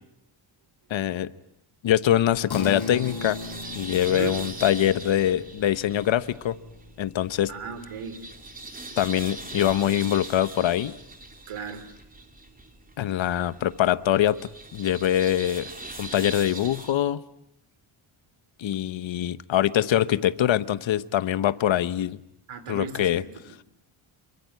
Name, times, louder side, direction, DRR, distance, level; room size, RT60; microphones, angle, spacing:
voice 1, 0.9-1.3 1.8-3.4 3.7-6.6 7.0-7.5 9.0-10.9 13.0-14.4 14.7-15.7 16.0-17.2 18.6-22.2 22.7-23.2, left 11 dB, 65° left, 15 dB, 1.1 m, -23 dB
sound 1, 2.2-16.9, right 2 dB, 15° right, 3.1 m, -41 dB
sound 2, 2.5-12.2, left 4 dB, 50° left, 6.5 m, -41 dB
voice 2, 4.1-4.4 7.5-8.3 11.5-11.9 22.5-23.3, right 6 dB, 85° right, 12 dB, 3.5 m, -35 dB
26.5 x 23.5 x 9.6 m, 0.80 s
wide cardioid pair, 135°, 49 cm